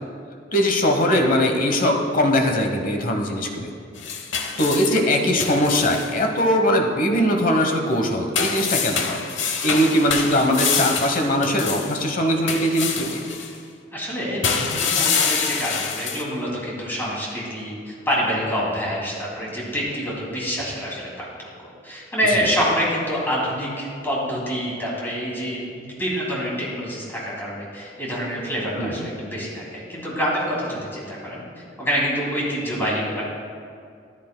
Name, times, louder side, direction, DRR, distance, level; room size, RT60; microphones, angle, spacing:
voice 1, 0.5-3.7 4.6-9.2 9.6-13.2 22.3-22.4 28.8-29.1, equal, 45° left, 3 dB, 1.0 m, -21 dB
sound 1, 3.9-6.1 8.3-12.0 12.5-13.5 14.4-16.2, left 6 dB, 80° left, 0.8 m, -25 dB
voice 2, 13.9-21.2 21.8-31.4 31.8-33.2, equal, 10° left, -6 dB, 2.5 m, -26 dB
14.0 x 10.5 x 2.2 m, 2.3 s
head